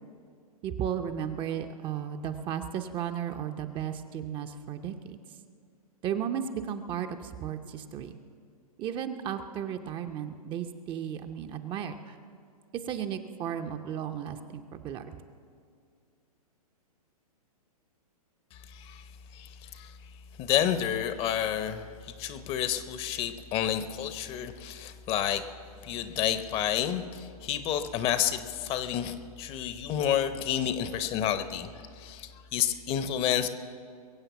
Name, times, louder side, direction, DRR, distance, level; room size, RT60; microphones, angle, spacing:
voice 1, 0.6-5.2 6.0-8.1 8.8-12.2 12.9-15.1, right 9 dB, 25° right, 7 dB, 0.7 m, -34 dB
voice 2, 18.5-19.0 19.3-20.0 20.4-25.5 25.8-31.7 32.0-33.5, left 10 dB, 30° left, 11 dB, 0.8 m, -30 dB
22.5 x 7.8 x 7.0 m, 2.2 s
hypercardioid pair, 125°, 20 cm